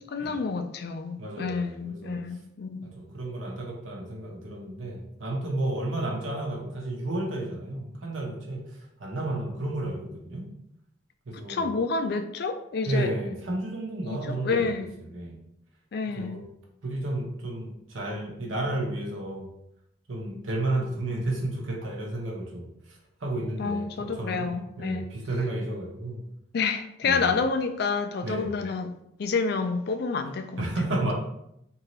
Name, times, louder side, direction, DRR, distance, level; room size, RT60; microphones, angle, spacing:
voice 1, 0.1-2.9 11.5-13.1 14.1-15.0 15.9-16.4 23.6-25.1 26.5-28.9 29.2-30.7, left 4 dB, 55° left, 8 dB, 0.3 m, -29 dB
voice 2, 1.2-2.2 2.8-10.5 11.3-11.7 12.8-15.4 16.1-16.4 16.8-19.5 20.1-24.5 24.8-26.2 27.0-27.3 28.2-28.5 30.6-31.1, right 1 dB, 90° right, -1 dB, 1.0 m, -32 dB
3.7 x 2.8 x 3.1 m, 0.78 s
head